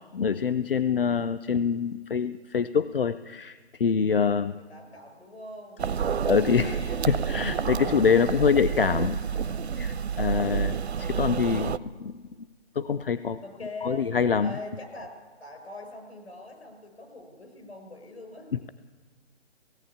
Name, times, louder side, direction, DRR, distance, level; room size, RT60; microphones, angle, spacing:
voice 1, 0.1-4.5 6.3-9.2 9.7-12.2 12.8-13.4 13.8-14.5, left 6 dB, 55° left, 13 dB, 0.6 m, -25 dB
voice 2, 4.1-6.0 8.2-8.8 13.4-14.1 14.4-18.7, left 2 dB, 70° left, 4 dB, 6.6 m, -43 dB
sound 1, 5.8-11.8, right 7 dB, 70° right, 0.8 m, -29 dB
17.5 x 17.0 x 8.6 m, 1.4 s
hypercardioid pair, 170°, 34 cm